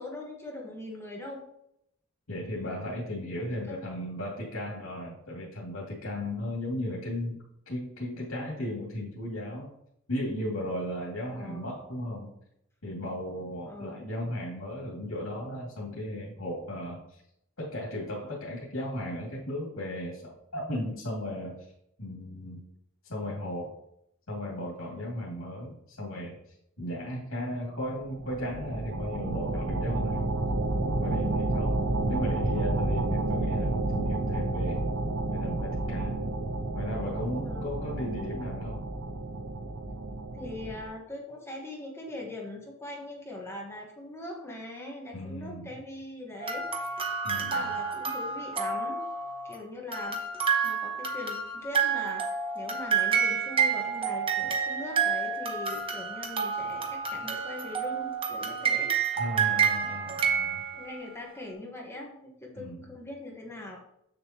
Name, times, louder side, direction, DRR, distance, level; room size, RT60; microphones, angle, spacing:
voice 1, 0.0-1.4 3.3-3.8 11.3-11.7 13.6-14.0 37.4-37.8 40.3-46.6 47.3-49.0 49.4-50.2 50.6-59.0 59.4-59.5 60.7-63.8, left 1 dB, 10° left, -1 dB, 1.2 m, -41 dB
voice 2, 2.3-7.4 7.7-9.7 10.1-12.3 12.8-17.2 17.6-21.7 22.0-22.6 23.0-23.8 24.3-30.3 30.8-34.8 35.3-36.3 36.7-38.8 45.1-45.7 47.2-47.8 59.1-60.6 62.5-62.8, left 1 dB, 85° left, -4 dB, 2.3 m, -36 dB
sound 1, 28.0-40.8, right 2 dB, 70° right, 0.8 m, -30 dB
sound 2, 46.4-49.6 49.9-61.1, right 6 dB, 25° right, 1.0 m, -29 dB
7.9 x 6.9 x 2.9 m, 0.76 s
head